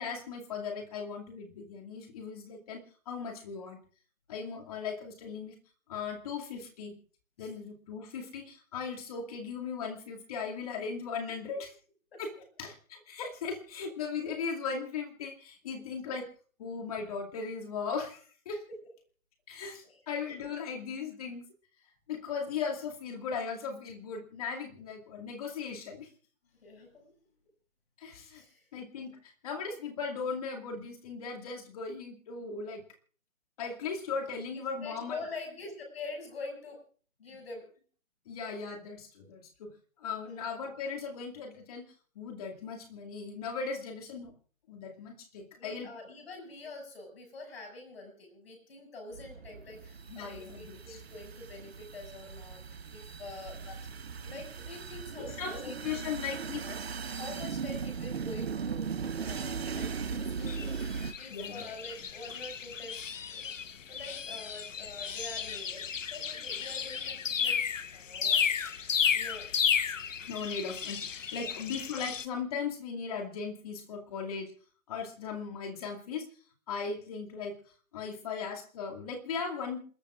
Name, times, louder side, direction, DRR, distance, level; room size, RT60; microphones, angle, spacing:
voice 1, 0.0-3.8 4.3-5.6 5.9-6.9 7.4-11.7 12.2-16.3 16.6-18.6 19.5-21.4 22.1-26.1 28.0-28.4 28.7-32.8 33.6-35.2 37.3-37.4 38.3-41.9 42.1-44.3 44.7-45.9 50.1-51.0 53.7-53.8 55.2-56.6 61.3-61.7 67.0-67.1 70.2-74.5 74.9-76.3 76.7-77.6 77.9-79.9, left 5 dB, 25° left, 2 dB, 2.4 m, -38 dB
voice 2, 26.6-27.0 28.3-28.6 34.5-36.8 37.2-37.6 40.2-40.4 45.6-53.6 54.2-55.8 56.0-56.8 57.1-58.9 59.2-63.0 63.3-63.5 63.9-67.6 67.9-68.4 69.1-69.5 71.4-71.6, left 3 dB, 45° left, 3 dB, 6.7 m, -45 dB
sound 1, 49.1-61.1, right 6 dB, 50° right, 1.1 m, -38 dB
sound 2, 60.5-72.3, left 7 dB, 65° left, 0.9 m, -33 dB
28.0 x 12.0 x 2.5 m, 0.43 s
figure-of-eight pair, 155°, 41 cm